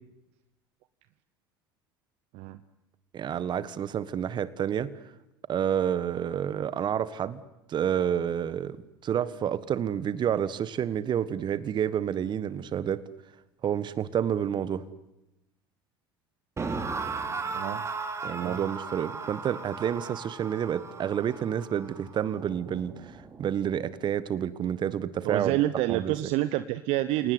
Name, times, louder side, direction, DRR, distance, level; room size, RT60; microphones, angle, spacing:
voice 1, 3.1-4.9 5.5-7.4 7.7-8.8 9.0-13.0 13.6-14.8 18.2-23.1 23.4-25.6 25.9-26.2, right 9 dB, 40° right, 17 dB, 1.5 m, -29 dB
sound 1, 16.6-23.7, right 4 dB, 25° right, 3.2 m, -37 dB
voice 2, 17.4-17.9 18.4-18.6 25.2-27.3, right 15 dB, 55° right, 13 dB, 1.0 m, -28 dB
29.5 x 18.5 x 9.6 m, 0.94 s
figure-of-eight pair, 70°, 12 cm